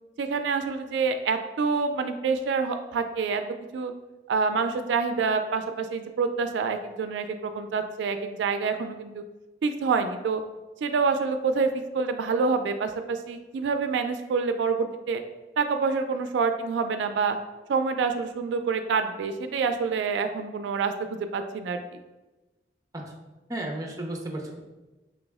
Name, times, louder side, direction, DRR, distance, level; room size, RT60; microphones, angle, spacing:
voice 1, 0.2-3.4 3.7-3.9 4.3-9.2 9.6-10.4 10.8-15.2 15.6-17.4 17.7-22.0, right 5 dB, 90° right, 7 dB, 0.3 m, -27 dB
voice 2, 22.9-24.6, right 1 dB, 20° right, 0 dB, 0.6 m, -34 dB
5.5 x 2.0 x 3.4 m, 1.1 s
head